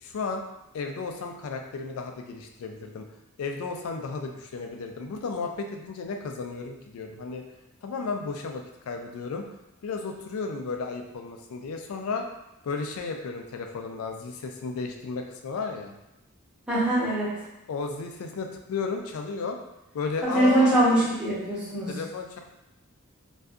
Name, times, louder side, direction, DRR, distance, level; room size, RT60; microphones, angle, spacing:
voice 1, 0.0-0.4 0.7-3.1 3.4-7.4 7.8-9.6 9.8-12.3 12.6-15.9 17.7-19.6 19.9-21.2 21.9-22.4, left 4 dB, 75° left, 4 dB, 0.3 m, -33 dB
voice 2, 16.7-17.3 20.3-21.9, right 1 dB, 5° right, -10 dB, 0.8 m, -22 dB
2.6 x 2.3 x 2.3 m, 0.93 s
head